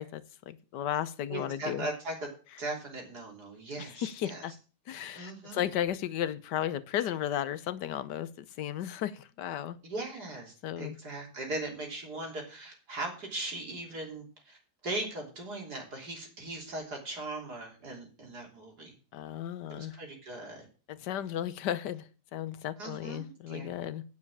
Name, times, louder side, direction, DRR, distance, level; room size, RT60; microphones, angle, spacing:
voice 1, 0.0-1.9 4.0-4.5 4.9-9.8 10.6-11.0 19.1-20.0 20.9-22.0 22.3-24.0, left 11 dB, 80° left, 1.4 m, -34 dB
voice 2, 1.3-2.3 2.6-4.5 5.2-5.6 9.8-19.0 19.7-20.7 22.8-23.7, right 2 dB, 70° right, 3.8 m, -39 dB
9.7 x 6.5 x 7.1 m
omnidirectional pair, 1.8 m